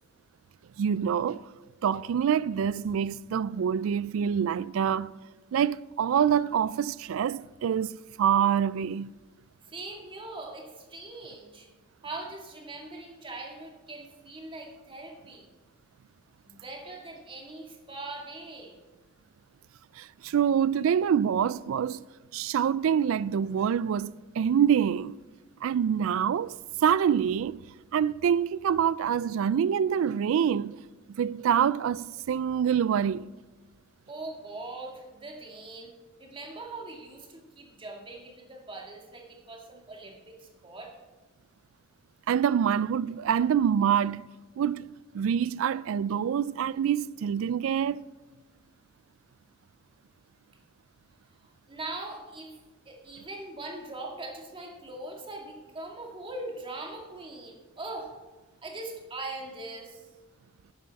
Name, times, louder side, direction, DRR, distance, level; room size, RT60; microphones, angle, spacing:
voice 1, 0.8-1.5 1.8-5.1 5.5-9.1 20.0-22.1 22.3-25.2 25.6-27.6 27.9-30.8 31.1-33.3 42.3-44.3 44.6-48.0, right 8 dB, 70° right, 0.3 m, -26 dB
voice 2, 9.7-11.7 12.0-15.5 16.4-18.8 34.1-35.9 36.2-40.9 51.7-58.1 58.6-60.1, right 2 dB, 25° right, 1.9 m, -41 dB
12.0 x 8.9 x 4.1 m
head